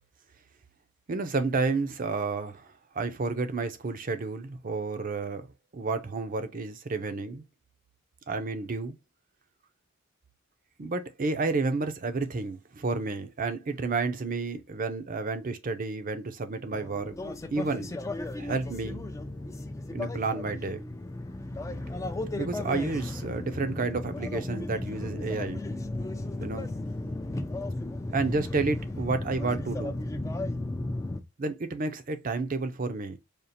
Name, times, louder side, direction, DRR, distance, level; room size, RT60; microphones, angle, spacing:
voice 1, 1.1-7.4 8.3-8.9 10.8-17.2 17.5-17.9 18.4-19.0 19.9-20.9 22.4-25.6 26.4-26.7 28.1-30.0 31.4-33.2, right 3 dB, 40° right, 0.5 m, -31 dB
sound 1, 16.7-31.2, left 2 dB, 15° left, 0.3 m, -35 dB
5.0 x 2.4 x 2.8 m
head